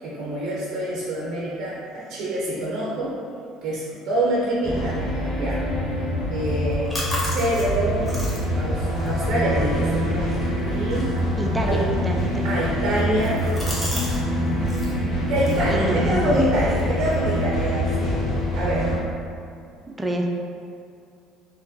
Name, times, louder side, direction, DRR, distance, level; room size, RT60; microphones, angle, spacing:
voice 1, 0.0-3.1 3.6-5.6 6.3-7.0 7.3-8.1 8.6-11.1 11.6-11.8 12.4-13.4 14.1-14.8 15.3-18.2 18.5-18.9, right 1 dB, 70° right, -6 dB, 0.6 m, -26 dB
sound 1, 4.6-18.9, equal, 70° left, 0.9 m, -25 dB
sound 2, 6.5-14.2 14.5-15.0 15.4-17.7, left 1 dB, 15° left, 1.1 m, -36 dB
voice 2, 11.4-12.5 15.7-16.5 19.9-20.3, right 1 dB, 15° right, 2 dB, 0.4 m, -27 dB
3.6 x 2.1 x 2.7 m, 2.4 s
supercardioid pair, 85°, 0 cm